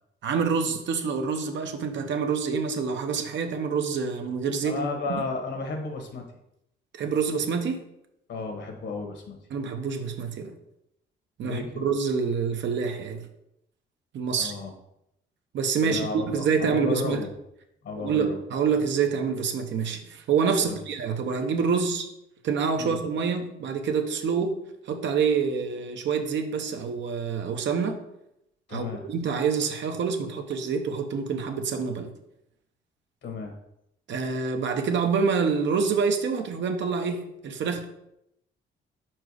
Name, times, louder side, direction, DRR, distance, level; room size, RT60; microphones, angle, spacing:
voice 1, 0.2-4.8 6.9-7.8 9.5-10.5 11.4-13.2 14.1-14.5 15.5-17.2 18.0-22.1 22.4-24.6 24.9-28.0 28.7-32.1 34.1-37.8, right 5 dB, 65° right, 5 dB, 0.9 m, -27 dB
voice 2, 4.6-6.3 8.3-9.4 11.4-11.9 14.4-14.7 15.8-17.3 17.8-18.4 20.6-20.8 22.8-23.0 28.7-29.1 33.2-33.5, left 4 dB, 65° left, 4 dB, 1.4 m, -33 dB
4.9 x 4.5 x 4.8 m, 0.82 s
cardioid pair, 90°, 20 cm